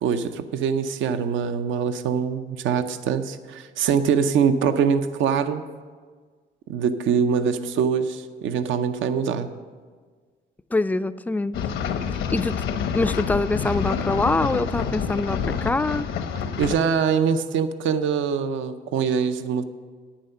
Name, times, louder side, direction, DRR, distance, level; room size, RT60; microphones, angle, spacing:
voice 1, 0.0-5.6 6.7-9.5 16.6-19.6, right 6 dB, 80° right, 10 dB, 0.6 m, -23 dB
voice 2, 10.7-11.6 12.3-12.6 12.9-16.1, left 2 dB, 10° left, 14 dB, 0.3 m, -24 dB
sound 1, 11.5-16.8, left 7 dB, 85° left, 0.9 m, -27 dB
10.0 x 9.0 x 5.6 m, 1.5 s
cardioid pair, 90°, 20 cm